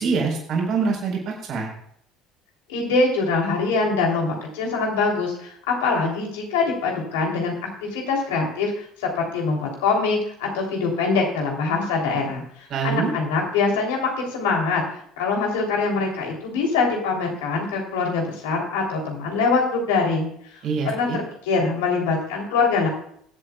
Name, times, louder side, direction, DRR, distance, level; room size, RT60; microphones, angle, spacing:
voice 1, 0.0-1.7 12.7-13.1 20.6-21.2, right 4 dB, 55° right, 0 dB, 4.4 m, -24 dB
voice 2, 2.7-7.5 7.8-14.8 15.2-20.6 20.8-22.9, left 4 dB, 80° left, 0 dB, 3.2 m, -23 dB
23.0 x 7.9 x 2.4 m, 0.67 s
hypercardioid pair, 65°, 0 cm